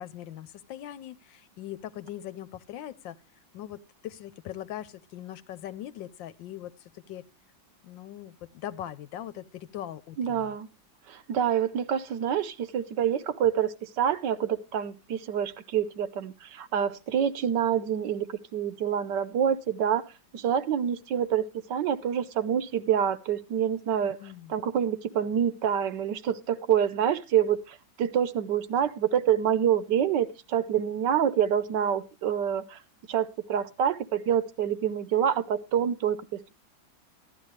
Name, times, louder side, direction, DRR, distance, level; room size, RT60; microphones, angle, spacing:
voice 1, 0.0-3.2 3.5-7.2 7.8-10.5 24.0-24.5, left 12 dB, 75° left, 14 dB, 1.4 m, -41 dB
voice 2, 10.2-10.7 11.1-24.2 24.5-32.8 33.1-36.6, right 9 dB, 70° right, 14 dB, 1.4 m, -27 dB
15.0 x 11.0 x 3.2 m, 0.29 s
omnidirectional pair, 2.1 m